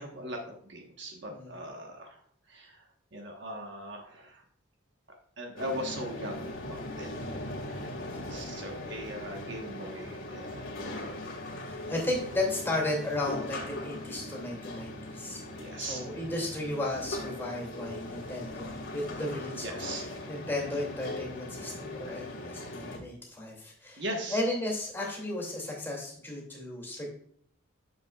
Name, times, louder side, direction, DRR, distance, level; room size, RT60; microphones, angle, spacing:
voice 1, 0.0-2.2 2.5-2.8 3.1-4.4 5.4-7.1 7.7-7.9 8.3-10.6 15.4-16.0 19.5-20.1 24.0-24.4, right 1 dB, 55° right, 2 dB, 1.2 m, -39 dB
voice 2, 1.3-1.6 7.0-7.4 8.1-8.5 11.7-15.4 15.8-18.7 18.9-24.0 24.3-27.1, left 1 dB, 10° left, -3 dB, 2.4 m, -34 dB
sound 1, 5.6-23.0, left 1 dB, 80° left, 2.0 m, -40 dB
9.7 x 7.2 x 2.3 m, 0.62 s
head